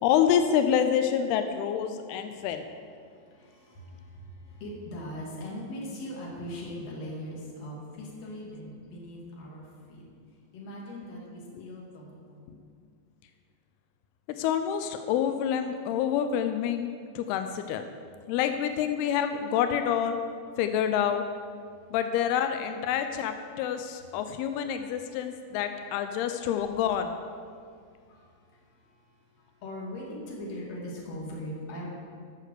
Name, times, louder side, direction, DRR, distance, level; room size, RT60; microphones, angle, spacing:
voice 1, 0.0-2.7 11.5-11.6 14.3-17.8 18.3-20.2 20.6-21.2 21.9-27.1, left 9 dB, 90° left, 7 dB, 2.2 m, -27 dB
voice 2, 2.1-2.5 3.0-10.0 10.5-12.6 21.7-21.9 25.1-25.2 26.0-26.1 27.5-31.9, left 1 dB, 40° left, -3 dB, 2.8 m, -41 dB
14.0 x 6.6 x 6.5 m, 2.2 s
omnidirectional pair, 5.2 m